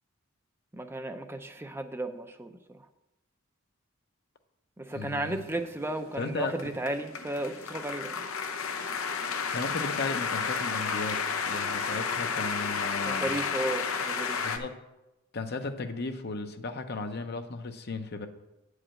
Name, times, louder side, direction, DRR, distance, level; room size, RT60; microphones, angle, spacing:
voice 1, 0.7-2.9 4.8-8.2 13.0-14.4, right 1 dB, 10° right, 7 dB, 0.5 m, -34 dB
voice 2, 4.9-5.4 6.2-6.5 9.5-11.2 11.4-13.3 14.4-14.7 15.3-18.3, left 3 dB, 50° left, 7 dB, 0.8 m, -35 dB
sound 1, 5.3-14.6, left 5 dB, 80° left, 0.8 m, -32 dB
8.8 x 4.9 x 7.5 m, 0.96 s
head